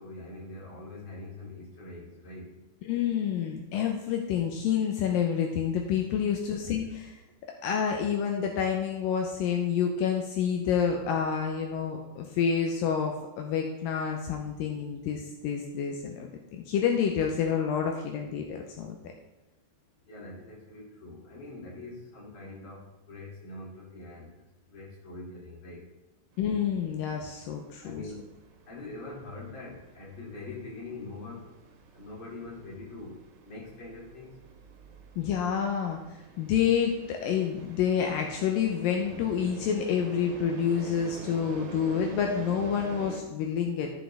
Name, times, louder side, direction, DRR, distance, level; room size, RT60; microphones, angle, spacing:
voice 1, 0.0-2.5 6.6-6.7 20.1-24.3 24.7-25.8 27.8-28.2 28.7-31.5 31.9-33.1 33.4-34.3, left 2 dB, 35° left, -3 dB, 3.0 m, -43 dB
voice 2, 2.9-7.1 7.6-19.0 26.4-28.0 35.2-44.0, left 7 dB, 80° left, 2 dB, 2.5 m, -28 dB
sound 1, 26.3-43.2, right 5 dB, 85° right, 3.1 m, -47 dB
14.5 x 6.5 x 3.4 m, 1.0 s
omnidirectional pair, 4.2 m